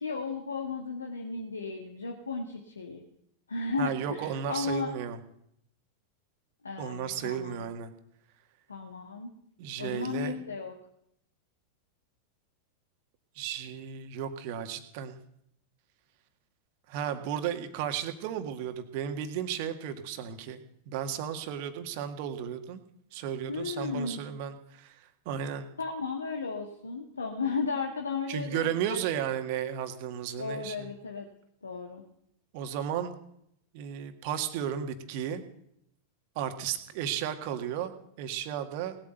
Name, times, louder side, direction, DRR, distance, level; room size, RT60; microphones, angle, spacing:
voice 1, 0.0-3.0 3.5-4.9 6.6-7.7 8.7-9.3 9.8-10.7 23.5-24.3 25.8-29.0 30.4-31.3 31.6-32.0, left 4 dB, 75° left, 2 dB, 1.7 m, -34 dB
voice 2, 3.8-5.2 6.8-7.9 9.6-10.4 13.4-15.2 16.9-22.8 23.1-25.7 28.3-30.9 32.5-33.2 33.7-35.4 36.4-39.0, right 9 dB, 45° right, 8 dB, 1.8 m, -34 dB
19.0 x 8.9 x 8.1 m, 0.74 s
figure-of-eight pair, 90°, 0 cm